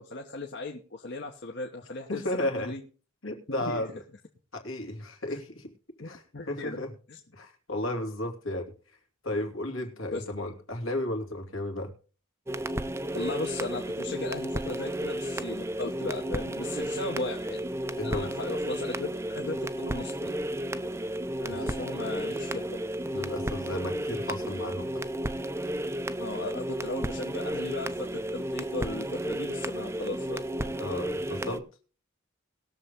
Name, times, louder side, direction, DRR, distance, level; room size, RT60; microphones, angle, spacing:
voice 1, 0.0-2.8 3.5-3.9 5.3-5.4 6.0-6.8 7.1-7.2 10.1-10.2 13.1-17.6 18.0-20.3 21.4-22.8 26.2-30.7, left 2 dB, 55° left, 1 dB, 1.4 m, -37 dB
voice 2, 2.1-2.7 3.2-4.0 4.5-5.7 6.0-6.9 7.3-8.7 9.2-11.9 18.0-18.3 21.5-21.8 23.1-24.9 30.7-31.6, left 1 dB, 75° left, 4 dB, 2.8 m, -34 dB
sound 1, 12.5-31.6, right 1 dB, 15° right, 0.6 m, -33 dB
20.5 x 6.9 x 3.8 m, 0.37 s
head